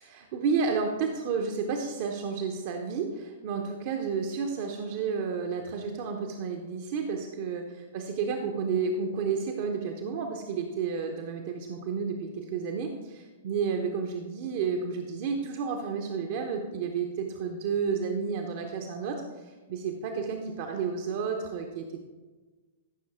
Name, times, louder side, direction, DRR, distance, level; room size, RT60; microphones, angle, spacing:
voice 1, 0.1-22.0, right 5 dB, 45° right, 3 dB, 0.9 m, -31 dB
14.0 x 6.3 x 3.6 m, 1.3 s
figure-of-eight pair, 105°, 0 cm